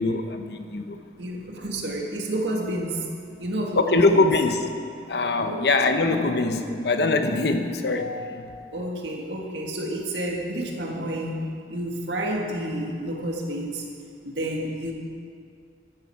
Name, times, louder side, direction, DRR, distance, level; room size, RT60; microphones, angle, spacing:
voice 1, 0.0-1.0 3.3-3.4 3.8-8.5, left 3 dB, 70° left, 7 dB, 0.9 m, -23 dB
voice 2, 1.2-3.0 3.4-4.3 5.4-5.6 8.7-13.9 14.2-14.9, right 1 dB, 85° right, 0 dB, 1.8 m, -30 dB
13.0 x 10.5 x 4.7 m, 2.3 s
head